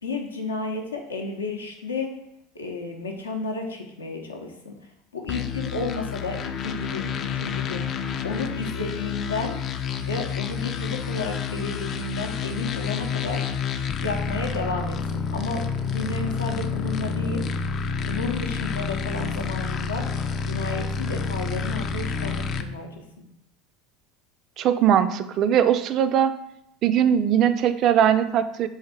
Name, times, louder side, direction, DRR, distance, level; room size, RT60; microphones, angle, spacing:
voice 1, 0.0-2.1 2.5-4.7 5.1-7.8 8.2-9.6 10.0-13.4 14.0-17.4 18.0-20.0 20.4-22.9 23.2-23.3, left 3 dB, 80° left, 2 dB, 0.6 m, -32 dB
sound 1, 5.3-22.6, left 6 dB, 40° left, 0.3 m, -29 dB
voice 2, 24.6-26.3 26.8-28.7, right 9 dB, 45° right, 11 dB, 0.3 m, -20 dB
3.3 x 3.2 x 4.4 m, 0.79 s
figure-of-eight pair, 70°, 0 cm